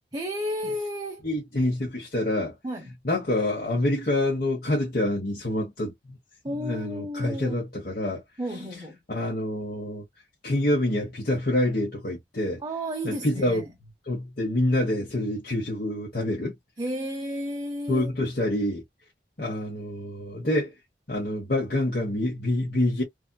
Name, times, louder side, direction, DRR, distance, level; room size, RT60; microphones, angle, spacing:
voice 1, 0.1-1.2 2.6-2.9 6.4-7.6 8.4-9.0 12.6-13.7 16.8-18.1, equal, 20° right, 0.7 m, -32 dB
voice 2, 1.2-2.6 3.0-6.2 6.5-8.2 9.1-10.0 10.4-12.6 13.0-13.6 14.1-16.5 17.9-18.8 19.4-20.7 21.1-23.0, left 1 dB, 50° left, 1.2 m, -26 dB
3.3 x 2.8 x 2.2 m
head